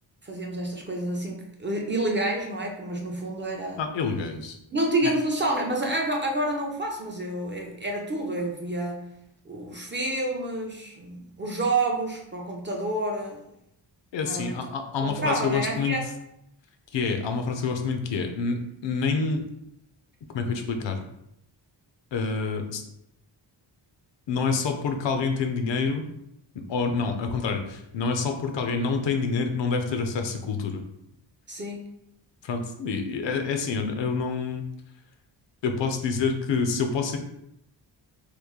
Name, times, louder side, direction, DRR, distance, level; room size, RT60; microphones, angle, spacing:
voice 1, 0.2-3.8 4.7-9.1 9.5-13.4 14.2-16.1 31.5-31.9, right 1 dB, 25° right, 0 dB, 0.4 m, -29 dB
voice 2, 3.8-4.6 5.0-5.1 14.1-16.0 16.9-19.4 20.3-21.0 22.1-22.8 24.3-26.1 26.5-30.8 32.4-34.6 35.6-37.2, left 5 dB, 70° left, 5 dB, 0.6 m, -27 dB
3.1 x 2.3 x 3.5 m, 0.80 s
wide cardioid pair, 155°, 45 cm